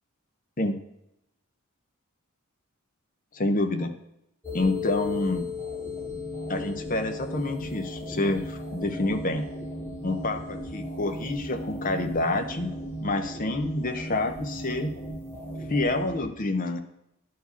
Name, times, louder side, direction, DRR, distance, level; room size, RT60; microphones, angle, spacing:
voice 1, 3.3-3.9 4.5-5.5 6.5-9.5 10.0-12.7 13.0-14.9 15.7-16.8, left 2 dB, 40° left, 6 dB, 0.7 m, -28 dB
sound 1, 4.4-16.2, left 2 dB, 10° left, 1.7 m, -36 dB
11.0 x 4.7 x 5.7 m, 0.83 s
head